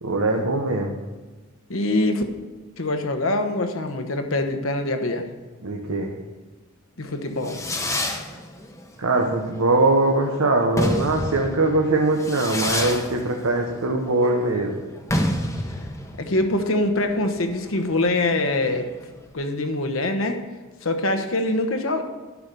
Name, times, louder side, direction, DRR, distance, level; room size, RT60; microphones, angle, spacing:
voice 1, 0.0-0.9 5.6-6.1 9.0-14.8, right 2 dB, 80° right, 1 dB, 1.1 m, -22 dB
voice 2, 1.7-2.2 2.8-5.2 7.0-7.6 16.2-18.9 19.3-20.4 20.8-22.0, left 2 dB, 65° left, 7 dB, 1.2 m, -24 dB
Fireworks, 7.1-19.3, left 1 dB, 15° left, 1.0 m, -30 dB
11.0 x 6.0 x 6.9 m, 1.3 s
head